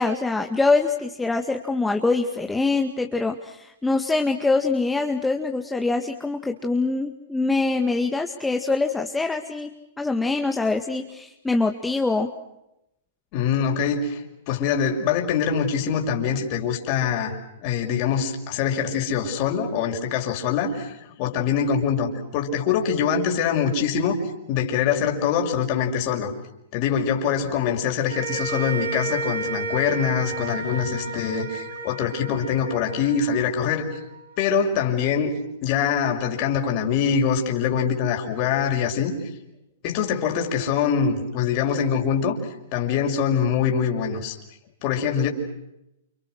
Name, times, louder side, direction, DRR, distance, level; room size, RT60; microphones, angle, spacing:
voice 1, 0.0-9.7 10.0-12.3, left 3 dB, 10° left, 4 dB, 2.1 m, -24 dB
voice 2, 13.3-17.3 17.6-24.2 24.5-26.3 26.7-33.9 34.4-35.3 35.6-39.2 39.8-42.4 42.7-44.4 44.8-45.3, left 7 dB, 45° left, 2 dB, 5.9 m, -24 dB
sound 1, 28.1-34.5, right 3 dB, 90° right, 6.2 m, -32 dB
30.0 x 29.5 x 6.5 m, 0.87 s
hypercardioid pair, 120°, 0 cm